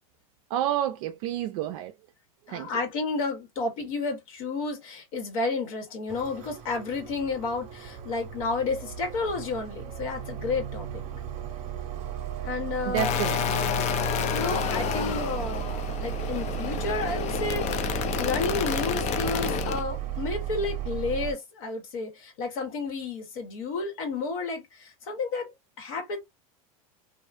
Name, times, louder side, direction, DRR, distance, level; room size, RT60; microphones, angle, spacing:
voice 1, 0.5-1.9 2.5-2.7 12.9-13.6, right 12 dB, 65° right, 0.4 m, -29 dB
voice 2, 2.5-11.0 12.4-13.2 14.3-25.5 25.8-26.2, left 3 dB, 70° left, 1.3 m, -31 dB
sound 1, 6.1-21.3, right 11 dB, 40° right, 0.8 m, -35 dB
sound 2, 13.0-19.8, left 9 dB, 35° left, 0.5 m, -29 dB
2.5 x 2.3 x 2.5 m
hypercardioid pair, 105°, 19 cm